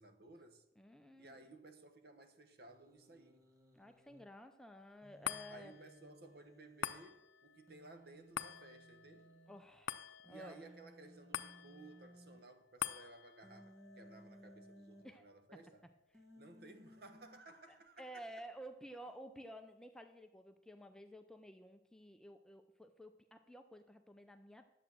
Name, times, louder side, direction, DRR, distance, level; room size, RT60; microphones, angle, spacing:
voice 1, 0.0-0.6 1.2-3.5 5.5-9.3 10.3-15.8 16.4-18.3, right 2 dB, 55° right, 1.0 m, -58 dB
voice 2, 0.8-1.5 3.7-5.7 9.5-10.0 10.3-10.6 15.0-15.2 15.5-15.6 17.7-24.7, equal, 5° left, 0.5 m, -53 dB
Human voice, 2.7-4.2 5.0-7.0 7.7-9.6 10.2-12.4 13.4-15.0 16.1-17.4, equal, 20° right, 1.0 m, -61 dB
sound 1, 5.2-17.8 18.3-18.4, left 9 dB, 80° left, 0.5 m, -49 dB
10.5 x 7.7 x 6.2 m
head